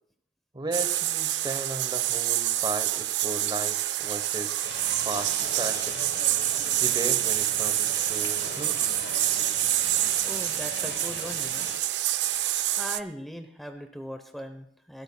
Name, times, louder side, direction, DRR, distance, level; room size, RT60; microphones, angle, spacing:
voice 1, 0.5-4.6 5.0-6.1 6.8-9.0, right 2 dB, 25° right, 10 dB, 1.0 m, -35 dB
sound 1, 0.7-13.0, right 14 dB, 70° right, 0.4 m, -27 dB
sound 2, 4.6-11.8, left 5 dB, 70° left, 1.1 m, -40 dB
voice 2, 9.9-11.7 12.8-15.0, equal, ahead, 6 dB, 0.8 m, -40 dB
20.0 x 12.5 x 2.2 m, 0.70 s
head